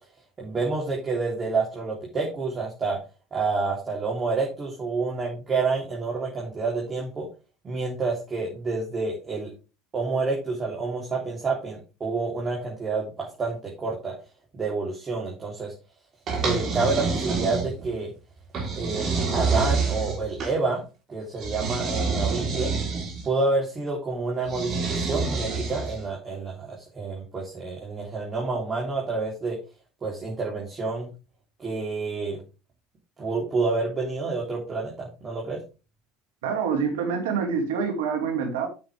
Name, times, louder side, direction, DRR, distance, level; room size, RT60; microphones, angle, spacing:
voice 1, 0.4-3.0 3.3-7.2 7.6-9.5 9.9-14.1 14.5-15.7 16.4-18.1 18.7-20.8 21.1-22.7 23.2-29.6 30.0-31.1 31.6-32.4 33.2-35.6, right 3 dB, 30° right, -2 dB, 3.5 m, -28 dB
sound 1, 16.3-17.9 18.5-20.6 21.4-23.3 24.5-26.1, right 4 dB, 50° right, 3.9 m, -27 dB
voice 2, 36.4-38.7, right 6 dB, 85° right, 5 dB, 2.5 m, -26 dB
9.5 x 7.0 x 3.5 m, 0.31 s
supercardioid pair, 90°, 0 cm